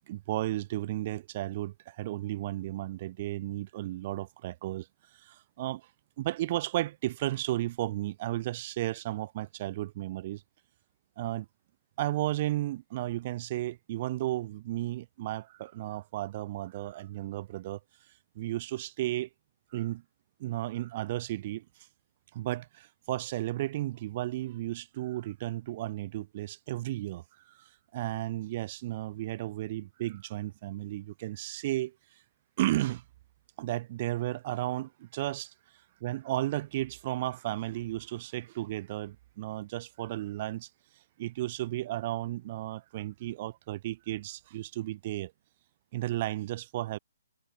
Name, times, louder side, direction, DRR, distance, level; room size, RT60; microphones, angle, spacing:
voice 1, 0.1-4.9 5.2-5.9 6.2-10.4 11.2-11.5 12.0-17.8 18.4-19.3 19.7-20.0 20.4-21.6 22.3-27.2 27.9-31.9 32.6-33.0 33.6-35.5 36.0-40.7 41.2-45.3 45.9-47.0, right 15 dB, 40° right, 2.2 m, -33 dB
hypercardioid pair, 145°, 0 cm